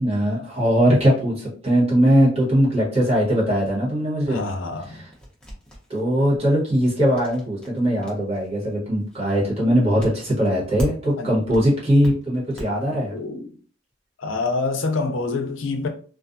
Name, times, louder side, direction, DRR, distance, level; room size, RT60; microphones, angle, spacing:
voice 1, 0.0-4.4 4.9-5.0 5.9-13.1, equal, 30° right, 1.2 m, -20 dB
voice 2, 4.3-5.0 11.2-11.4 13.1-13.5 14.2-15.9, left 3 dB, 75° left, 0.5 m, -26 dB
sound 1, 4.8-11.2 11.5-12.7, equal, 5° left, 0.7 m, -37 dB
2.4 x 2.3 x 2.5 m
head